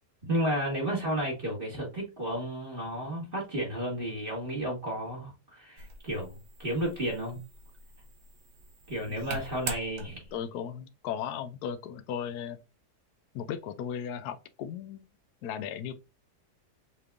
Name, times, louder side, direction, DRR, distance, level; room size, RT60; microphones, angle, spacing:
voice 1, 0.2-6.3 6.6-7.4 8.9-10.2, equal, 35° right, 1.9 m, -32 dB
sound 1, 5.8-10.5, right 4 dB, 85° right, 1.6 m, -43 dB
voice 2, 10.3-12.6 13.3-15.1 15.4-15.9, left 8 dB, 75° left, 1.1 m, -36 dB
5.7 x 3.3 x 2.4 m
omnidirectional pair, 1.8 m